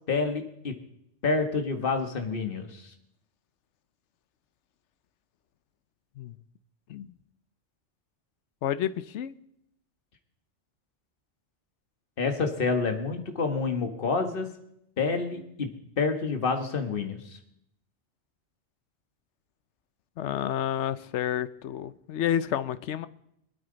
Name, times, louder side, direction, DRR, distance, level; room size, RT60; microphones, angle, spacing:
voice 1, 0.1-0.8 1.2-2.9 12.2-14.5 15.0-15.7 16.0-17.4, left 4 dB, 45° left, 1.6 m, -28 dB
voice 2, 8.6-9.3 20.2-23.1, left 10 dB, 70° left, 0.9 m, -30 dB
23.5 x 9.0 x 4.0 m
omnidirectional pair, 1.3 m